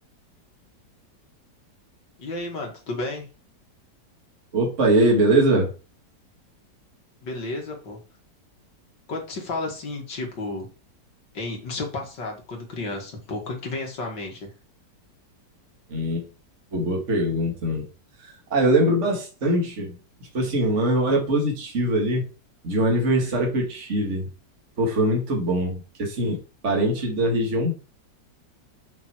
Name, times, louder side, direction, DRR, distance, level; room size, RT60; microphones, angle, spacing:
voice 1, 2.2-3.3 7.2-8.0 9.1-10.7 11.3-14.5, left 2 dB, 80° left, 1 dB, 2.9 m, -32 dB
voice 2, 4.5-5.7 15.9-16.3 16.7-17.8 18.2-20.0 20.3-22.3 22.6-24.3 24.8-27.7, right 1 dB, 45° right, 0 dB, 2.3 m, -22 dB
7.1 x 5.9 x 4.6 m, 0.34 s
omnidirectional pair, 1.9 m